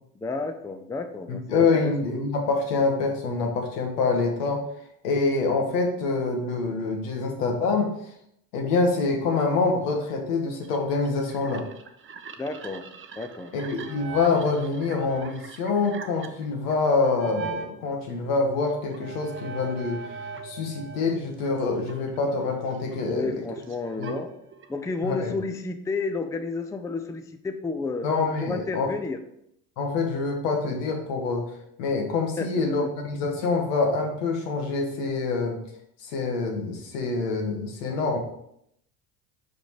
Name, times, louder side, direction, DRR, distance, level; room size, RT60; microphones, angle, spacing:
voice 1, 0.1-1.9 12.4-12.9 13.2-13.5 23.1-24.3 24.7-28.1 28.4-29.2 32.4-32.9, left 3 dB, 5° left, 7 dB, 0.5 m, -31 dB
voice 2, 1.3-4.6 5.0-7.9 8.5-11.7 13.5-20.0 20.4-23.3 24.0-24.1 25.0-25.3 28.0-28.9 29.8-31.4 31.8-35.6 36.0-38.2, left 4 dB, 75° left, 2 dB, 1.8 m, -26 dB
sound 1, 10.6-17.7 18.2-21.1 21.4-25.0, right 5 dB, 25° right, 0.8 m, -40 dB
5.2 x 5.2 x 4.8 m, 0.74 s
hypercardioid pair, 80°, 48 cm